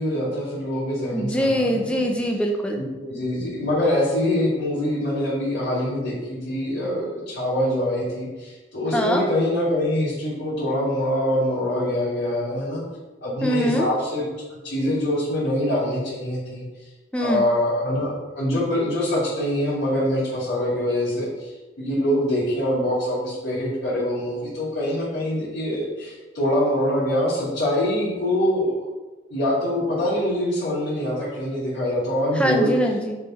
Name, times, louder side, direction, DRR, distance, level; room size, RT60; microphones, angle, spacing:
voice 1, 0.0-2.1 2.8-12.8 13.2-14.2 14.6-16.6 17.2-28.9 29.3-32.7, left 1 dB, 80° left, -9 dB, 2.2 m, -24 dB
voice 2, 1.1-2.8 8.9-9.3 13.4-13.9 17.1-17.5 32.4-33.2, equal, 5° left, 1 dB, 0.6 m, -22 dB
7.0 x 3.3 x 4.8 m, 1.2 s
head